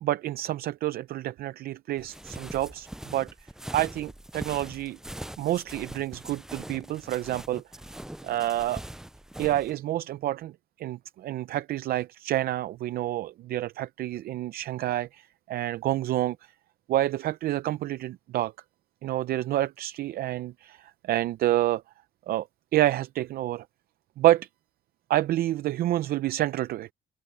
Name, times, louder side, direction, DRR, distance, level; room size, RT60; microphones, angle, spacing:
voice 1, 0.0-5.0 5.4-7.6 8.2-8.8 9.4-10.5 10.8-16.4 16.9-18.5 19.0-21.8 22.3-22.5 22.7-23.6 24.2-24.5 25.1-26.9, right 14 dB, 65° right, 0.6 m, -28 dB
sound 1, 2.0-9.7, right 1 dB, 5° right, 0.4 m, -42 dB
open air
cardioid pair, 110°, 17 cm